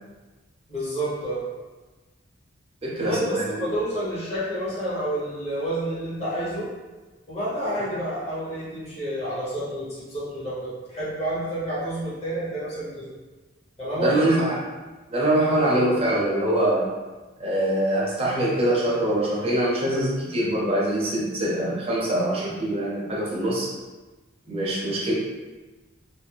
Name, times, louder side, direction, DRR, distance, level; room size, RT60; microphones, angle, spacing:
voice 1, 0.7-1.4 3.0-6.7 7.3-13.1 13.8-14.4, right 1 dB, 35° left, -10 dB, 1.2 m, -29 dB
voice 2, 2.8-3.6 7.6-7.7 14.0-14.6 15.1-16.9 17.4-23.7 24.5-25.1, right 1 dB, 30° right, -5 dB, 0.6 m, -23 dB
2.4 x 2.1 x 3.4 m, 1.2 s
head